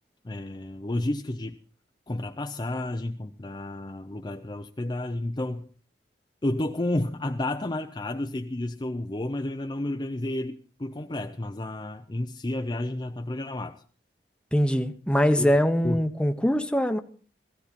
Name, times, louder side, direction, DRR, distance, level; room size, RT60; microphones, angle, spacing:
voice 1, 0.2-1.6 2.1-5.7 6.4-13.8 15.4-15.6 15.8-16.0, left 1 dB, 25° left, 0.6 m, -31 dB
voice 2, 14.5-17.0, equal, 5° left, 1.0 m, -23 dB
16.5 x 16.0 x 4.2 m
head